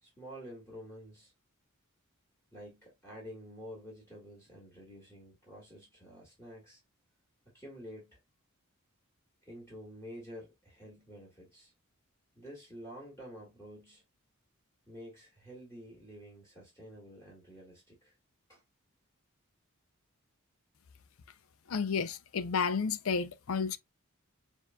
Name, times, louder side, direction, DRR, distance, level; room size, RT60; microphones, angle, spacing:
voice 1, 0.0-1.3 2.5-6.8 7.5-8.2 9.5-11.7 12.4-14.0 14.9-18.1 18.5-18.6, equal, 15° left, 2.1 m, -49 dB
voice 2, 21.7-23.8, left 5 dB, 70° left, 0.5 m, -31 dB
6.9 x 2.6 x 2.2 m
head